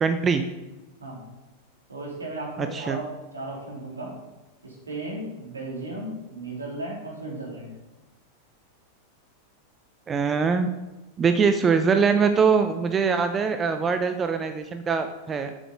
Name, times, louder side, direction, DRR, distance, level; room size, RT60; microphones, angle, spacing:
voice 1, 0.0-0.4 2.6-3.0 10.1-10.7 11.2-15.5, right 5 dB, 20° right, 8 dB, 0.6 m, -22 dB
voice 2, 1.9-3.0 3.3-4.1 4.6-7.7, right 2 dB, 75° right, -3 dB, 3.1 m, -35 dB
7.9 x 7.6 x 5.0 m, 1.1 s
figure-of-eight pair, 90°, 0 cm